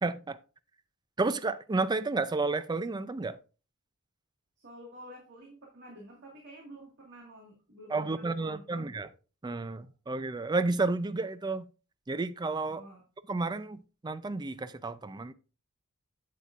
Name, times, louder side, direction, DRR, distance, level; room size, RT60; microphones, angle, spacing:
voice 1, 0.0-0.4 1.2-3.4 7.9-9.1 9.4-11.7 12.1-12.8 13.3-15.3, right 3 dB, 20° right, 0.4 m, -31 dB
voice 2, 4.6-9.0 12.7-13.0, right 1 dB, 55° right, 1.8 m, -50 dB
8.4 x 8.1 x 2.5 m
head